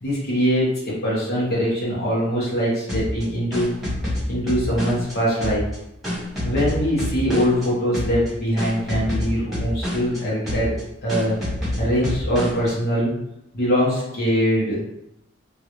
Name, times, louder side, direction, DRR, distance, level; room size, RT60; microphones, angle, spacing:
voice 1, 0.0-3.7 4.3-5.6 6.4-10.7 11.0-11.4 11.8-13.1 13.5-14.8, equal, 55° left, -7 dB, 1.1 m, -22 dB
sound 1, 2.9-5.1 5.4-7.7 7.9-8.3 8.6-10.2 10.5-10.8 11.1-12.7, left 1 dB, ahead, 1.4 m, -27 dB
3.7 x 2.4 x 3.0 m, 0.82 s
head